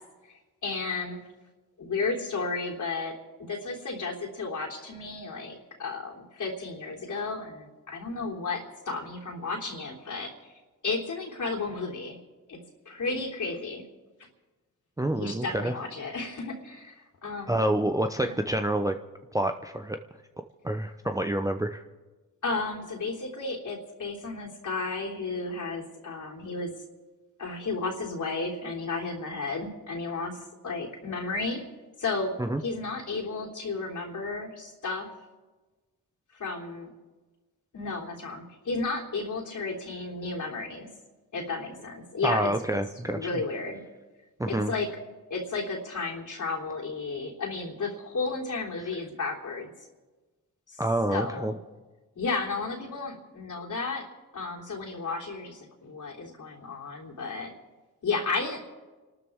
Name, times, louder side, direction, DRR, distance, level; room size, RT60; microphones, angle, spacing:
voice 1, 0.6-1.2 1.8-3.2 3.5-10.5 10.8-12.1 12.5-12.6 12.8-13.8 15.1-17.6 18.2-18.4 22.4-26.7 27.4-30.4 30.6-31.6 32.0-35.1 36.3-36.9 37.7-40.9 41.3-42.5 43.1-43.8 44.5-44.9 45.3-49.7 50.7-50.8 51.1-51.6 52.1-54.0 54.3-57.5 58.0-58.6, left 3 dB, 50° left, -1 dB, 3.4 m, -33 dB
voice 2, 15.0-15.7 17.5-18.9 19.3-20.0 20.6-21.8 32.4-32.6 42.2-43.2 44.4-44.7 50.8-51.5, right 1 dB, 10° right, 6 dB, 0.7 m, -27 dB
29.5 x 12.5 x 3.6 m, 1.3 s
cardioid pair, 80°, 38 cm